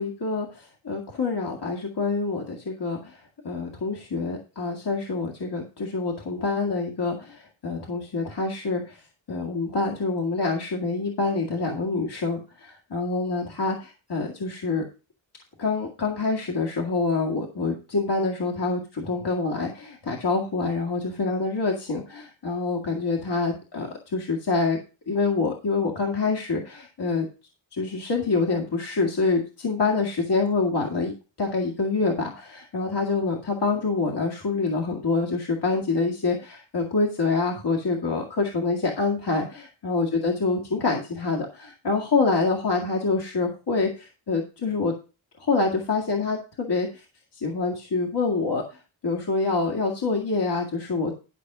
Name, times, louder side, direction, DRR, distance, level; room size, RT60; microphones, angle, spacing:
voice 1, 0.0-9.0 9.3-14.8 15.6-24.8 25.1-27.3 27.7-31.1 31.4-44.9 45.4-47.0 47.4-48.6 49.0-51.1, left 3 dB, 55° left, 0 dB, 2.1 m, -26 dB
12.0 x 4.3 x 6.1 m, 0.32 s
cardioid pair, 50°, 47 cm